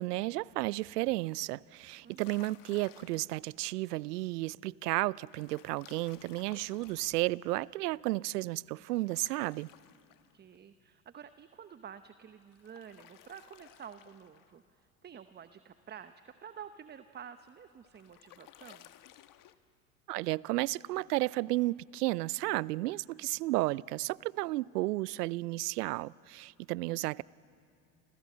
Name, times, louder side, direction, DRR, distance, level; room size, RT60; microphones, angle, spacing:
voice 1, 0.0-9.7 20.1-27.2, right 19 dB, 70° right, 0.6 m, -33 dB
sound 1, 1.9-3.4 5.3-7.2 8.9-10.6 12.4-14.6 17.5-19.5, left 13 dB, 40° left, 1.3 m, -57 dB
voice 2, 2.0-2.5 10.3-18.9, right 8 dB, 20° right, 0.8 m, -50 dB
29.5 x 26.0 x 7.5 m
hypercardioid pair, 80°, 49 cm